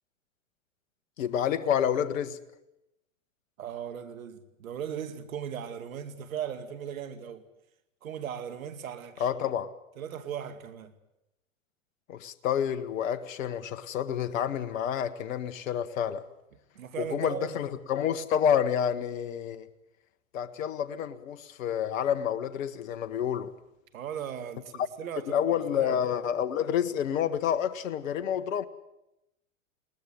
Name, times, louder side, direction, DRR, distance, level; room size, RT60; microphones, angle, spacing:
voice 1, 1.2-2.4 9.2-9.7 12.1-16.3 17.0-19.7 20.3-23.5 25.3-28.6, left 9 dB, 70° left, 1.5 m, -29 dB
voice 2, 3.6-7.4 8.0-9.3 10.0-10.9 16.7-17.6 23.9-26.0, right 8 dB, 75° right, 2.4 m, -38 dB
20.5 x 20.0 x 9.3 m
hypercardioid pair, 115°, 41 cm